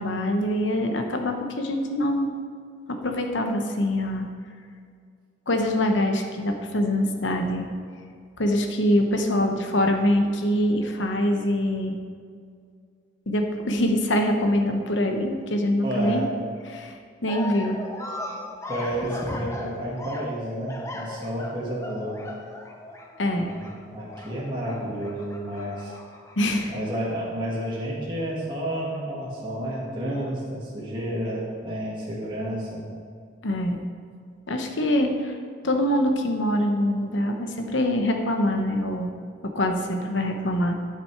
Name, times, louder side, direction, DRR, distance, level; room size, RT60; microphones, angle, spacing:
voice 1, 0.0-2.3 2.9-4.3 5.5-7.7 8.4-12.0 13.3-16.2 16.7-17.0 17.2-17.8 23.2-23.5 26.4-26.7 33.4-33.8 34.5-35.4 35.6-39.1 39.5-40.8, left 1 dB, 80° left, 4 dB, 0.9 m, -24 dB
voice 2, 15.8-16.3 18.7-22.2 23.3-25.9 26.7-32.8, equal, 25° right, -6 dB, 1.7 m, -31 dB
sound 1, 17.3-26.5, left 1 dB, 15° left, 0.7 m, -37 dB
10.0 x 6.1 x 4.6 m, 2.2 s
head